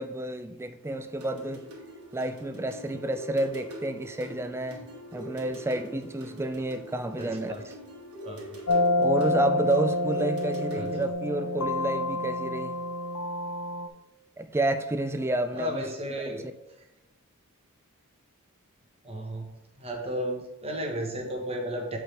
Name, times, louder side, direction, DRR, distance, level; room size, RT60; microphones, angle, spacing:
voice 1, 0.0-1.7 2.1-7.6 9.0-12.8 14.4-15.8 16.3-16.4, right 2 dB, 10° right, 0.3 m, -30 dB
sound 1, 1.2-11.1, equal, 85° right, 1.6 m, -44 dB
voice 2, 7.2-7.6 8.2-8.4 10.7-10.9 15.5-16.4 19.0-19.5 19.8-22.0, equal, 25° right, 1.2 m, -33 dB
sound 2, 8.7-13.9, left 1 dB, 85° left, 0.5 m, -28 dB
7.8 x 4.7 x 3.3 m
head